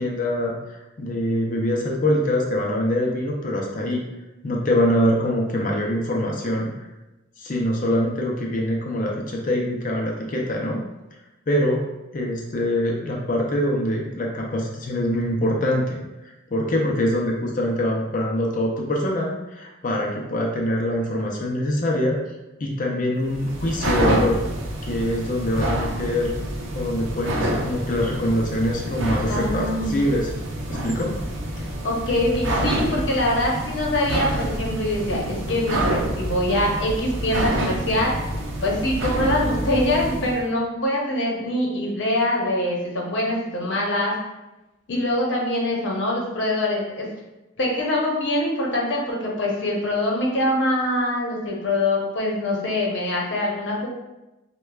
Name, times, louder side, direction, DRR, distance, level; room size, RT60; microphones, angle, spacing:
voice 1, 0.0-4.0 4.4-6.7 7.4-10.8 11.5-11.8 12.1-22.2 22.6-24.4 24.8-26.3 26.7-30.3 30.7-31.2, left 1 dB, 40° left, -1 dB, 0.5 m, -24 dB
sound 1, 23.2-40.4, right 1 dB, 65° right, 0.6 m, -27 dB
voice 2, 29.3-30.1 31.8-38.1 38.6-44.1 44.9-47.1 47.6-53.9, left 1 dB, 60° left, -2 dB, 0.8 m, -24 dB
6.2 x 2.2 x 2.3 m, 1.0 s
head